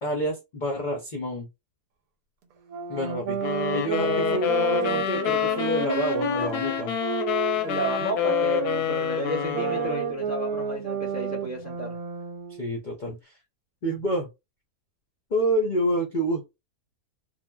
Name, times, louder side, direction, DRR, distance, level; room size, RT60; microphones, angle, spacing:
voice 1, 0.0-1.5 2.9-6.9 12.6-13.4 13.8-14.3 15.3-16.4, equal, 55° left, 0.5 m, -28 dB
sound 1, 2.7-12.7, right 7 dB, 85° right, 1.2 m, -31 dB
sound 2, 3.4-10.2, left 9 dB, 90° left, 1.1 m, -27 dB
voice 2, 7.6-12.0, right 1 dB, 15° right, 0.5 m, -32 dB
3.2 x 2.1 x 2.2 m
omnidirectional pair, 1.6 m